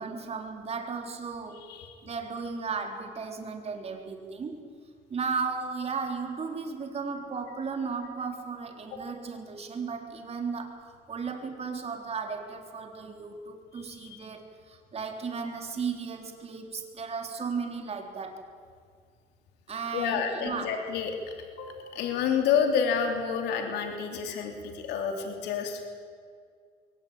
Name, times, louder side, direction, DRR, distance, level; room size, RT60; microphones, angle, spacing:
voice 1, 0.0-1.7 2.0-4.7 5.1-18.4 19.7-20.8, right 5 dB, 40° right, 4 dB, 3.8 m, -35 dB
voice 2, 19.9-21.1 21.6-25.9, left 7 dB, 85° left, 4 dB, 3.3 m, -29 dB
22.5 x 18.0 x 9.0 m, 2.1 s
cardioid pair, 110°, 17 cm